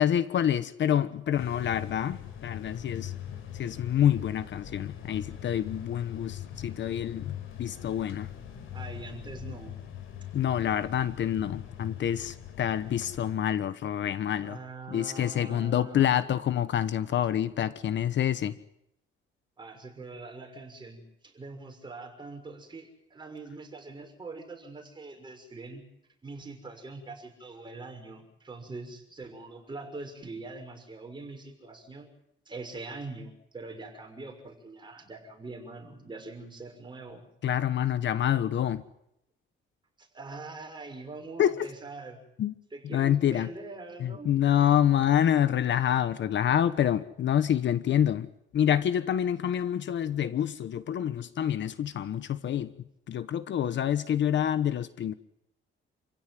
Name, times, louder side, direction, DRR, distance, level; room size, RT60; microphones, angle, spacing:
voice 1, 0.0-3.1 3.5-8.3 10.3-14.6 14.9-18.6 37.4-38.8 41.4-41.6 42.4-42.5 42.9-43.5 44.0-52.7 53.1-55.1, left 10 dB, 60° left, 1.2 m, -27 dB
sound 1, 1.4-13.3, left 10 dB, 75° left, 5.2 m, -41 dB
voice 2, 8.7-9.7 14.4-16.2 19.6-25.8 26.2-32.1 32.5-37.3 40.0-42.2 42.7-44.3, right 3 dB, 20° right, 6.2 m, -43 dB
28.0 x 16.0 x 9.3 m
cardioid pair, 130°, 21 cm